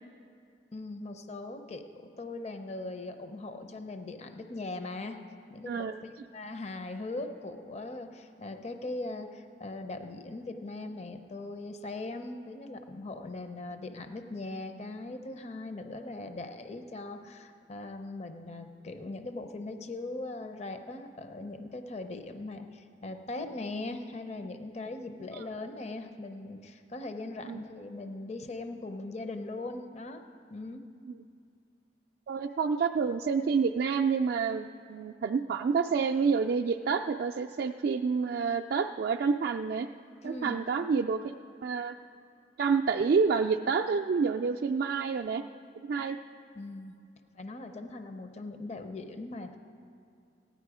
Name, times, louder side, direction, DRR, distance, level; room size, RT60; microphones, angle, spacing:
voice 1, 0.7-1.8 2.2-5.2 5.5-30.2 30.5-30.8 40.2-40.6 46.6-47.0 47.3-49.6, left 2 dB, 40° left, 7 dB, 0.6 m, -40 dB
voice 2, 5.7-6.0 25.3-25.4 27.5-27.6 32.3-39.9 40.2-41.2 41.6-42.0 42.6-45.4 45.8-46.2, right 5 dB, 60° right, 2 dB, 0.3 m, -28 dB
16.0 x 10.5 x 4.9 m, 2.4 s
head